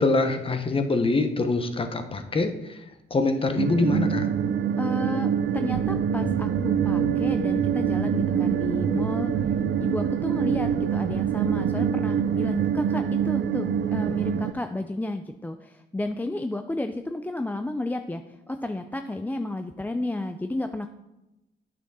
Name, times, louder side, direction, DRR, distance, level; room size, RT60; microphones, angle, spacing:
voice 1, 0.0-2.8 3.1-4.3, left 3 dB, 25° left, 7 dB, 0.9 m, -24 dB
sound 1, 3.6-14.5, right 8 dB, 65° right, 0.5 m, -25 dB
voice 2, 4.8-9.3 9.8-20.9, left 2 dB, 10° left, 7 dB, 0.4 m, -32 dB
sound 2, 6.1-12.4, left 2 dB, 55° left, 1.2 m, -38 dB
8.6 x 6.0 x 4.1 m, 0.95 s
cardioid pair, 90°, 20 cm